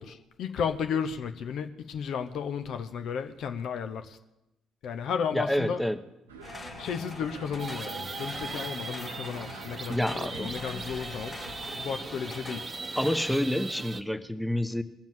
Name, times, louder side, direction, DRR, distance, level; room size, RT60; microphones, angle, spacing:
voice 1, 0.0-4.2 4.8-5.8 6.8-11.4 11.8-12.7, left 7 dB, 55° left, 8 dB, 0.8 m, -33 dB
voice 2, 5.3-6.0 9.9-10.9 13.0-14.8, left 1 dB, 5° left, 10 dB, 1.0 m, -29 dB
sound 1, 6.3-12.4, right 2 dB, 80° right, 1.1 m, -46 dB
sound 2, 6.4-13.4, left 3 dB, 30° left, 1.2 m, -44 dB
sound 3, 7.6-14.0, right 4 dB, 35° right, 0.9 m, -39 dB
20.0 x 7.3 x 7.6 m, 0.95 s
figure-of-eight pair, 45°, 0 cm